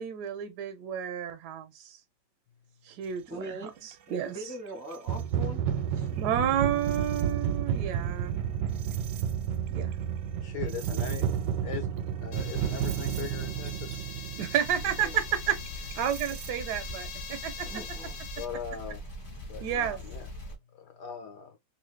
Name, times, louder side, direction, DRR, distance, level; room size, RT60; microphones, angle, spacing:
voice 1, 0.0-2.0 2.8-3.4 3.8-4.3 6.2-8.6 9.7-9.9 14.4-17.7 19.6-20.0, right 9 dB, 70° right, 1.0 m, -31 dB
voice 2, 3.3-3.8 4.1-5.6 5.9-6.2 10.7-10.8 15.0-15.2 17.6-18.2, right 1 dB, 15° right, 0.6 m, -41 dB
sound 1, 3.9-4.0 4.9-16.5, right 8 dB, 90° right, 1.3 m, -31 dB
voice 3, 10.4-11.3 11.6-11.9 12.2-14.0 18.4-19.0 19.5-20.3 20.7-21.6, left 8 dB, 70° left, 1.2 m, -40 dB
sound 2, 12.3-18.5, left 6 dB, 85° left, 0.6 m, -44 dB
sound 3, 14.7-20.6, equal, 35° left, 1.5 m, -41 dB
3.1 x 2.6 x 3.1 m
omnidirectional pair, 2.0 m